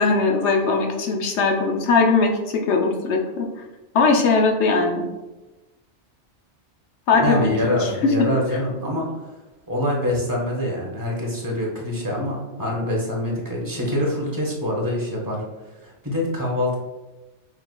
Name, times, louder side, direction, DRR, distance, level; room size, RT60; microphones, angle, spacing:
voice 1, 0.0-3.5 3.9-5.0 7.1-7.5 7.8-8.1, left 4 dB, 75° left, 1 dB, 0.9 m, -20 dB
voice 2, 7.2-9.2 9.7-15.4 15.8-16.8, left 1 dB, 20° right, -3 dB, 1.0 m, -25 dB
5.7 x 3.2 x 2.2 m, 1.1 s
omnidirectional pair, 1.2 m